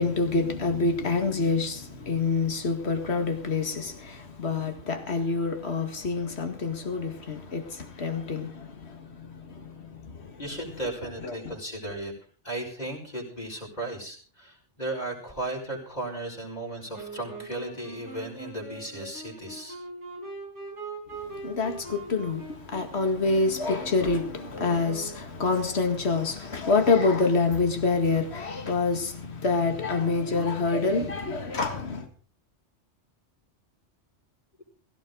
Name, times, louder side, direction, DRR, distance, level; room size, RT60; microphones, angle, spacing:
voice 1, 0.0-10.4 11.2-11.5 21.4-32.1, left 3 dB, 65° left, 2.2 m, -27 dB
voice 2, 10.4-12.1 12.4-19.8, right 1 dB, 35° left, 5.5 m, -35 dB
Wind instrument woodwind instrument, 16.9-25.3, right 3 dB, 85° right, 5.6 m, -42 dB
17.0 x 17.0 x 3.9 m
omnidirectional pair, 1.2 m